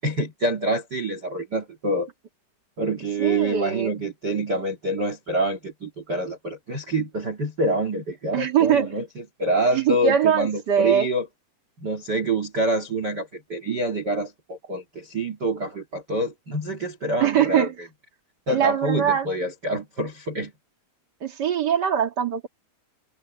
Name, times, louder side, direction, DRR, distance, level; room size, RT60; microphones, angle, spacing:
voice 1, 0.0-2.1 2.8-11.3 11.8-17.7 18.5-20.5, right 1 dB, 35° right, 2.0 m, -26 dB
voice 2, 3.2-3.9 8.3-8.9 9.7-11.1 17.2-17.7 18.5-19.3 21.2-22.5, right 8 dB, 75° right, 0.9 m, -22 dB
omnidirectional pair, 4.9 m